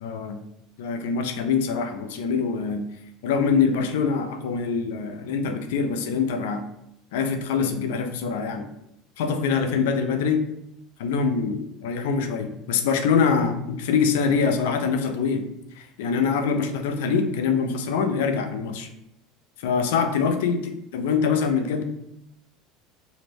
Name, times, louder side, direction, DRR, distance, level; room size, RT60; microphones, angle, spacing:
voice 1, 0.0-0.4 0.8-2.8 3.2-6.6 7.1-8.7 9.2-10.4 11.0-15.4 15.8-18.9 19.6-21.8, left 5 dB, 80° left, 7 dB, 0.3 m, -24 dB
2.5 x 2.0 x 3.2 m, 0.80 s
hypercardioid pair, 90°, 0 cm